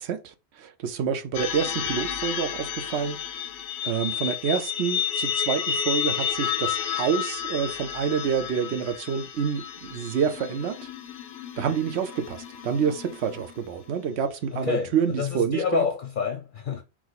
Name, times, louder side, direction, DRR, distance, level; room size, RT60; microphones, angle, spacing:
voice 1, 0.0-3.2 3.8-10.8 11.6-15.8, right 7 dB, 75° right, 0.9 m, -28 dB
sound 1, 1.3-13.9, left 9 dB, 85° left, 0.9 m, -31 dB
voice 2, 14.5-16.8, left 6 dB, 55° left, 0.7 m, -28 dB
4.7 x 2.1 x 4.0 m
omnidirectional pair, 1.1 m